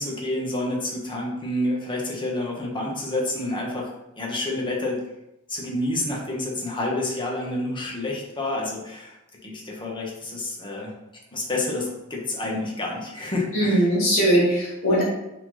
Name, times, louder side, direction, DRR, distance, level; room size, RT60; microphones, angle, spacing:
voice 1, 0.0-3.9 4.2-5.0 5.5-9.1 9.4-10.9 11.3-13.8, left 1 dB, 20° left, -3 dB, 1.3 m, -28 dB
voice 2, 13.5-15.1, right 1 dB, 65° left, -7 dB, 2.2 m, -20 dB
5.6 x 4.0 x 4.3 m, 0.90 s
head